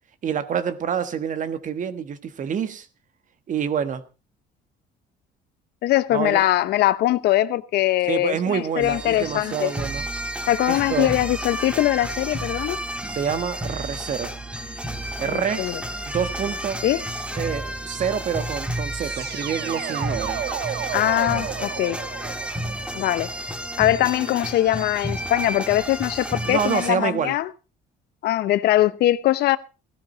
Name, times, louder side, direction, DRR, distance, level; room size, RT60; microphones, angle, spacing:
voice 1, 0.2-2.9 3.5-4.0 6.1-6.4 8.1-10.1 10.7-11.1 13.1-14.3 15.2-15.7 16.1-16.8 17.4-20.4 26.4-27.3, right 7 dB, 50° right, 1.5 m, -27 dB
voice 2, 5.8-9.7 10.5-12.8 15.3-15.8 16.8-17.0 20.9-22.0 22.9-23.3 23.8-27.5 28.2-29.6, left 14 dB, 75° left, 0.9 m, -22 dB
sound 1, 8.8-26.9, right 1 dB, 5° right, 2.0 m, -31 dB
sound 2, 19.0-23.9, right 9 dB, 80° right, 1.8 m, -33 dB
17.0 x 12.5 x 4.0 m
cardioid pair, 110°, 17 cm